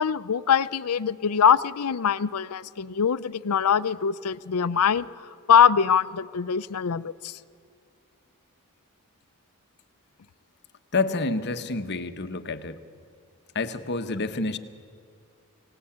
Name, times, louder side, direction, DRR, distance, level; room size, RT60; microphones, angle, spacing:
voice 1, 0.0-7.4, left 7 dB, 80° left, 14 dB, 0.6 m, -23 dB
voice 2, 10.9-12.8 13.5-14.6, left 3 dB, 50° left, 9 dB, 1.1 m, -28 dB
24.5 x 17.5 x 8.7 m, 2.3 s
head